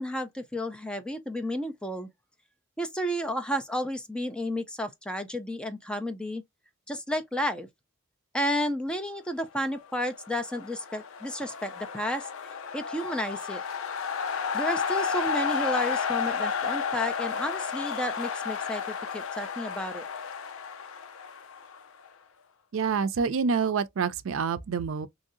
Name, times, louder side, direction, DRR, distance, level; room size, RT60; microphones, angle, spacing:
voice 1, 0.0-2.1 2.8-6.4 6.9-7.7 8.3-12.3 12.7-13.6 14.5-20.1, equal, 5° left, 0.4 m, -32 dB
sound 1, 10.1-22.1, left 6 dB, 70° left, 0.5 m, -32 dB
voice 2, 22.7-25.1, right 5 dB, 70° right, 0.4 m, -27 dB
3.1 x 2.7 x 2.5 m
head